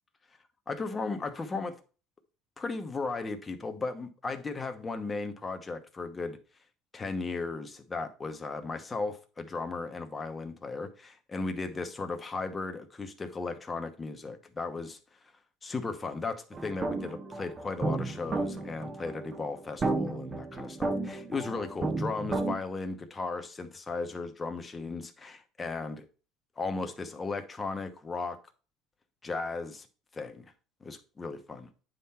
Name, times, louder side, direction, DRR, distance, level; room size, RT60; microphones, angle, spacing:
voice 1, 0.7-1.8 2.6-6.4 6.9-15.0 15.6-26.0 26.6-28.4 29.2-29.9 30.1-30.5 30.8-31.7, left 3 dB, 20° left, 1.0 m, -36 dB
sound 1, 16.5-22.6, right 3 dB, 25° right, 0.7 m, -33 dB
9.1 x 3.8 x 4.3 m
cardioid pair, 125°, 0 cm